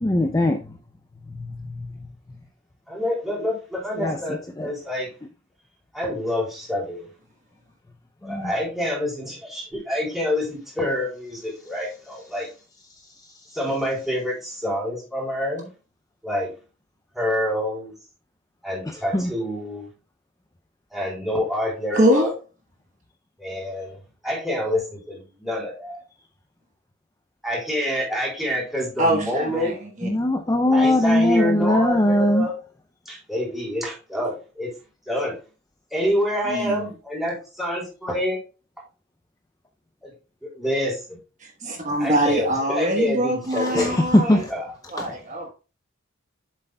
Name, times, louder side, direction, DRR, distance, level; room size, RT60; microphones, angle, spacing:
voice 1, 0.0-0.6 1.3-1.9 4.0-4.2 4.6-4.7 8.2-8.5 19.1-19.3 30.0-32.5 43.6-44.5 45.0-45.1, left 1 dB, 15° left, 0.5 m, -20 dB
voice 2, 2.9-5.1 5.9-7.0 8.2-12.5 13.5-15.7 16.2-16.5 17.1-17.9 18.6-19.9 20.9-22.3 23.4-24.0 24.2-26.0 27.4-29.7 30.7-32.5 33.1-34.7 35.1-35.4 35.9-38.4 40.0-40.1 40.4-41.2 42.0-44.0 44.5-44.7 45.0-45.4, left 1 dB, ahead, 3.7 m, -27 dB
voice 3, 21.9-22.3 29.0-30.1 36.4-36.9 41.4-44.4 44.9-45.5, equal, 35° right, 1.2 m, -23 dB
7.8 x 7.4 x 2.3 m
head